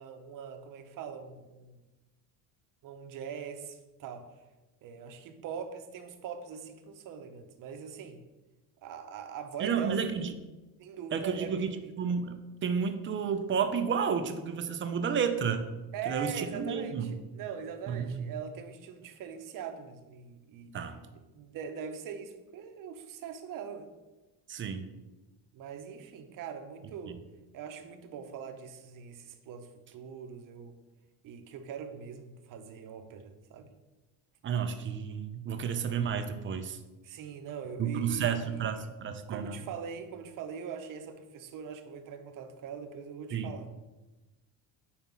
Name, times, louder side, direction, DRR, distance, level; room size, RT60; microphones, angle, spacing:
voice 1, 0.0-1.8 2.8-4.3 4.8-8.2 8.8-10.0 10.8-11.9 15.9-20.7 21.3-23.9 25.5-27.2 27.5-30.8 31.2-33.7 37.0-38.2 38.5-38.6 39.3-43.7, right 7 dB, 50° right, 7 dB, 0.8 m, -42 dB
voice 2, 9.6-10.3 11.1-15.7 16.1-17.1 17.9-18.2 20.7-21.0 24.5-24.9 27.1-27.2 34.4-36.8 37.8-39.5 43.3-43.5, right 6 dB, 30° right, 8 dB, 0.5 m, -31 dB
5.5 x 4.3 x 5.9 m, 1.1 s
cardioid pair, 155°, 41 cm